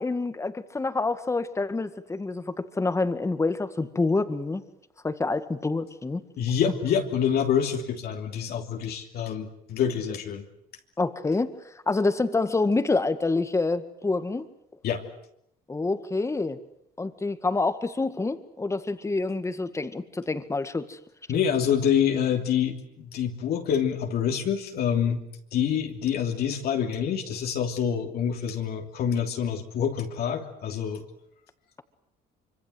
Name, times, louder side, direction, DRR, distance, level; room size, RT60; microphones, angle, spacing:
voice 1, 0.0-4.6 5.0-6.2 11.0-11.5 11.9-14.5 15.7-16.6 17.0-21.0, left 3 dB, 15° left, 11 dB, 2.0 m, -27 dB
voice 2, 6.4-10.4 14.8-15.0 21.3-25.2 25.5-31.0, left 8 dB, 65° left, 3 dB, 3.1 m, -26 dB
25.0 x 25.0 x 8.0 m, 0.76 s
cardioid pair, 110°, 17 cm